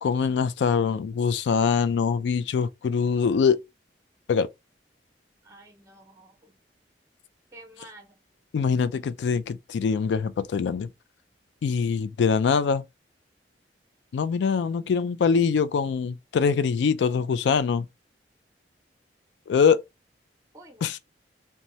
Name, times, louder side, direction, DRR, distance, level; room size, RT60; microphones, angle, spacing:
voice 1, 0.0-3.6 4.3-4.5 8.5-10.9 11.6-12.8 14.1-17.9 19.5-19.8 20.8-21.0, left 6 dB, 75° left, 0.3 m, -23 dB
voice 2, 5.4-6.5 7.5-8.2 20.5-20.9, right 2 dB, 20° right, 0.7 m, -50 dB
2.7 x 2.2 x 3.0 m
head